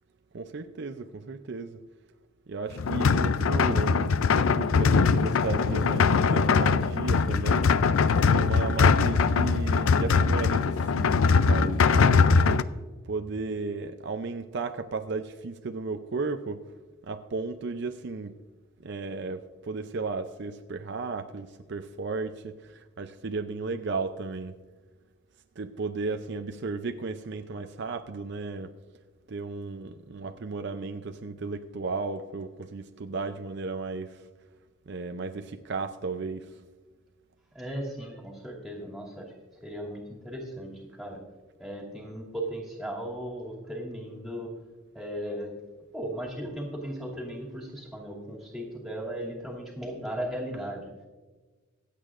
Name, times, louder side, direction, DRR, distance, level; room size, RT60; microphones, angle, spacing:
voice 1, 0.3-1.8 2.5-7.7 8.2-12.6 13.1-16.8 17.0-18.3 18.8-24.6 25.6-28.7 29.3-34.3 34.9-36.6, right 3 dB, 55° right, 8 dB, 0.5 m, -34 dB
sound 1, 2.8-12.6, left 5 dB, 90° left, 0.5 m, -22 dB
voice 2, 37.5-39.3 39.6-40.7 41.0-41.2 41.6-44.5 44.9-45.5 45.9-50.9, right 1 dB, ahead, -3 dB, 2.5 m, -36 dB
25.0 x 8.3 x 2.5 m, 1.3 s
head